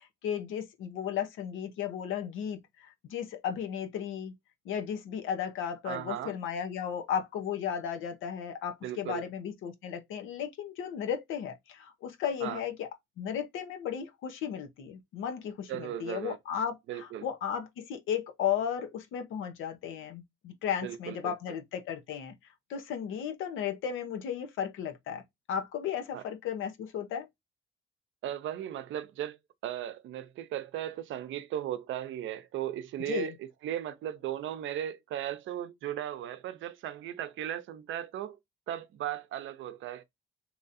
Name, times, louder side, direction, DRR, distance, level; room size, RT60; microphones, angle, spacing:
voice 1, 0.0-4.3 4.6-12.9 13.2-22.3 22.7-25.2 25.5-27.3 33.0-33.3, left 8 dB, 85° left, 0.8 m, -35 dB
voice 2, 5.8-6.3 8.8-9.2 12.4-12.6 15.7-16.4 16.9-17.2 20.8-21.3 26.1-26.2 28.2-29.4 29.6-33.4 33.6-38.4 38.7-40.0, right 11 dB, 80° right, 0.6 m, -36 dB
2.9 x 2.6 x 4.0 m
cardioid pair, 90°, 20 cm